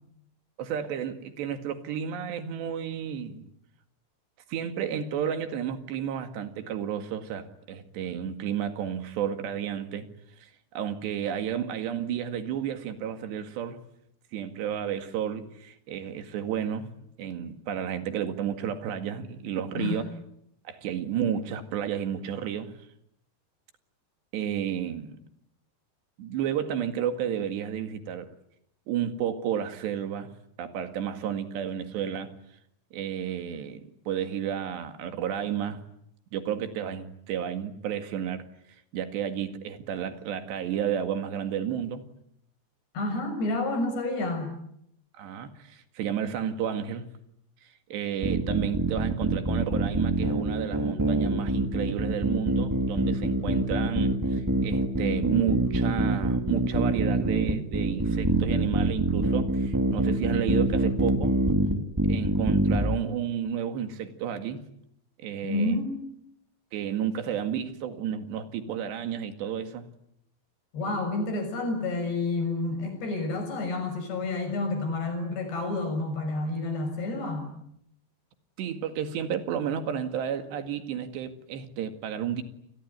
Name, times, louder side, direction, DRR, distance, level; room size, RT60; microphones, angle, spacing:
voice 1, 0.6-3.5 4.5-10.1 10.4-13.8 14.3-16.9 17.2-20.1 20.7-22.8 24.3-25.2 26.2-28.3 28.9-30.3 30.6-32.3 32.9-35.8 36.3-38.4 38.9-42.0 45.2-47.1 47.9-61.4 62.1-64.6 65.2-65.8 66.7-69.9 78.6-82.4, right 9 dB, 75° right, 8 dB, 4.1 m, -32 dB
voice 2, 43.0-44.5 65.4-65.9 70.7-77.5, left 2 dB, 65° left, 6 dB, 8.6 m, -29 dB
sound 1, 48.2-63.0, right 1 dB, 10° right, 0.8 m, -25 dB
28.5 x 21.0 x 9.5 m, 0.75 s
omnidirectional pair, 5.1 m